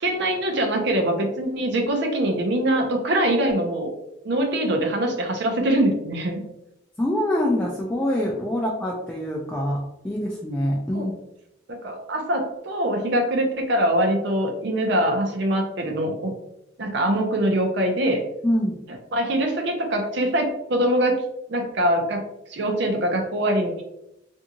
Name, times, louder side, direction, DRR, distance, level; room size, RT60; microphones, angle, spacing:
voice 1, 0.0-3.9 4.2-6.4 10.9-11.1 11.7-16.4 16.8-18.2 19.1-21.2 21.5-22.2 22.5-23.8, right 1 dB, 60° right, 3 dB, 0.5 m, -23 dB
voice 2, 7.0-11.1 18.4-18.8, left 1 dB, 10° left, -3 dB, 0.3 m, -25 dB
2.6 x 2.3 x 2.8 m, 0.85 s
head